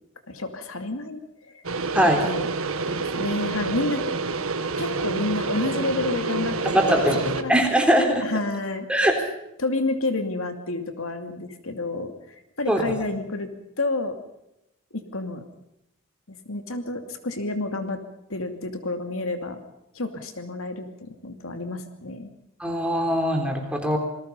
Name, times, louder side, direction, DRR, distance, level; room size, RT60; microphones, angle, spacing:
voice 1, 0.3-1.6 2.2-2.5 2.9-4.2 4.8-7.1 7.4-7.5 8.2-8.9 9.6-13.5 13.8-14.2 14.9-15.4 16.3-18.0 18.3-19.6 19.9-22.3, left 2 dB, 80° left, 6 dB, 2.6 m, -30 dB
sound 1, 1.6-7.4, right 3 dB, 85° right, 1.6 m, -28 dB
voice 2, 1.9-2.2 6.7-8.2 8.9-9.2 12.7-12.8 22.6-24.0, equal, 5° right, 2 dB, 3.7 m, -21 dB
27.5 x 20.5 x 5.5 m, 0.84 s
head